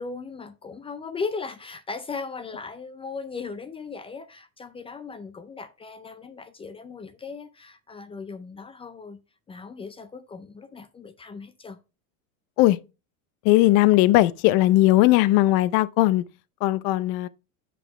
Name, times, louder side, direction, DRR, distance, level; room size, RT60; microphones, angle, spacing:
voice 1, 0.0-9.2 9.5-11.8, left 4 dB, 15° left, 0.4 m, -37 dB
voice 2, 13.4-16.2 16.6-17.3, left 17 dB, 55° left, 0.6 m, -18 dB
6.0 x 5.7 x 4.7 m
supercardioid pair, 120°, 42 cm